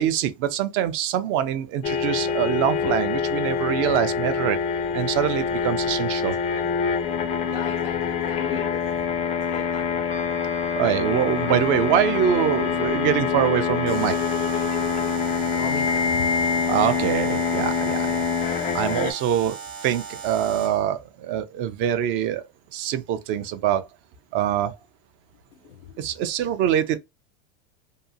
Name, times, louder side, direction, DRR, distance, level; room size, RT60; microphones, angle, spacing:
voice 1, 0.0-4.6 4.9-6.4 10.7-14.2 16.7-18.2 18.7-22.4 22.7-23.9 24.3-24.7 26.0-27.0, right 10 dB, 40° right, 0.4 m, -24 dB
sound 1, 1.8-19.1, left 6 dB, 25° left, 0.4 m, -25 dB
voice 2, 7.4-8.8 9.2-10.1 15.5-16.3 25.5-26.0, left 10 dB, 75° left, 0.5 m, -38 dB
Wind instrument woodwind instrument, 10.1-15.2, right 5 dB, 90° right, 1.1 m, -41 dB
Alarm, 13.9-20.9, right 6 dB, 60° right, 0.9 m, -38 dB
2.8 x 2.3 x 2.5 m
supercardioid pair, 125°, 29 cm